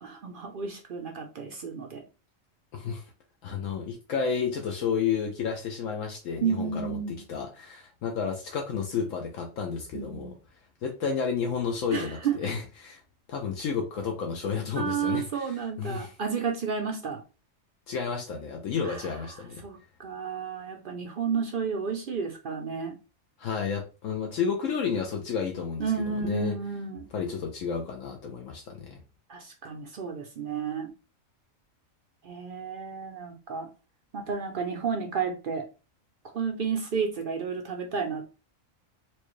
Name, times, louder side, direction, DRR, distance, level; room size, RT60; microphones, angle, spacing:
voice 1, 0.0-2.0 6.4-7.2 9.9-10.4 11.9-12.4 14.8-17.2 18.8-19.0 19.6-23.0 25.8-27.1 29.3-30.9 32.2-33.7 34.1-35.7 36.3-38.3, right 6 dB, 60° right, 3 dB, 0.6 m, -31 dB
voice 2, 2.7-3.1 3.4-10.3 10.8-13.0 13.3-16.1 17.9-19.6 23.4-26.5 27.1-29.0, left 6 dB, 75° left, 2 dB, 1.0 m, -31 dB
4.5 x 2.2 x 3.0 m, 0.32 s
omnidirectional pair, 1.4 m